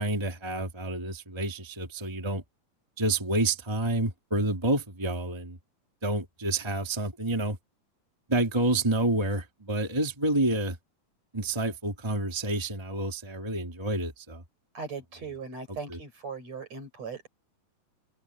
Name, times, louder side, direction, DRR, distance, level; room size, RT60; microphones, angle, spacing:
voice 1, 0.0-2.4 3.0-5.6 6.0-7.6 8.3-10.8 11.3-14.4 15.7-16.0, right 2 dB, 10° right, 2.3 m, -29 dB
voice 2, 14.7-17.3, right 5 dB, 50° right, 7.7 m, -39 dB
open air
omnidirectional pair, 3.9 m